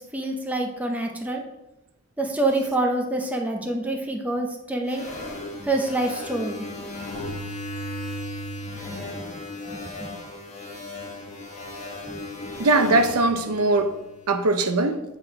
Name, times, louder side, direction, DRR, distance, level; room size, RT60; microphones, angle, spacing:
voice 1, 0.1-1.4 2.2-5.1 5.6-6.6 8.9-9.4 9.7-10.1 12.1-12.2, right 2 dB, 5° right, 0.7 m, -27 dB
sound 1, 4.9-14.3, left 1 dB, 30° left, 1.5 m, -36 dB
voice 2, 12.6-13.9 14.3-15.0, right 2 dB, 85° right, 0.7 m, -20 dB
8.8 x 3.7 x 4.6 m
head